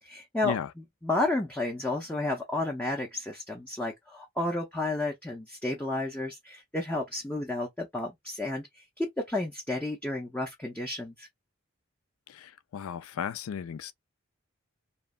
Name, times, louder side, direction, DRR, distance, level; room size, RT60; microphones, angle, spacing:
voice 1, 0.0-11.3, left 2 dB, 5° left, 0.4 m, -32 dB
voice 2, 12.3-13.9, left 7 dB, 75° left, 0.4 m, -35 dB
3.0 x 2.2 x 2.3 m
head